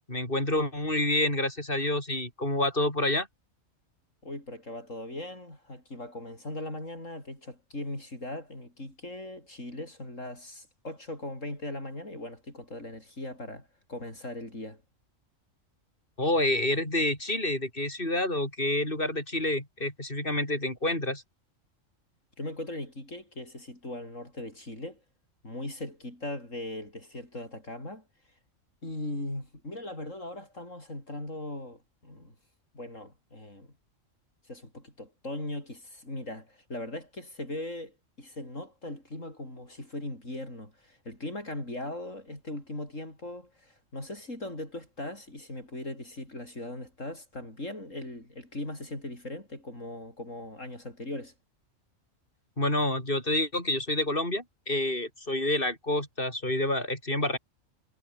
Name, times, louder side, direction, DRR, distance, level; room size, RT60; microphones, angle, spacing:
voice 1, 0.1-3.3 16.2-21.2 52.6-57.4, left 1 dB, 40° left, 7.9 m, -28 dB
voice 2, 4.2-14.8 22.4-25.0 25.4-28.0 28.8-32.3 32.7-33.7 34.5-51.3, left 1 dB, 70° left, 8.5 m, -39 dB
omnidirectional pair, 1.4 m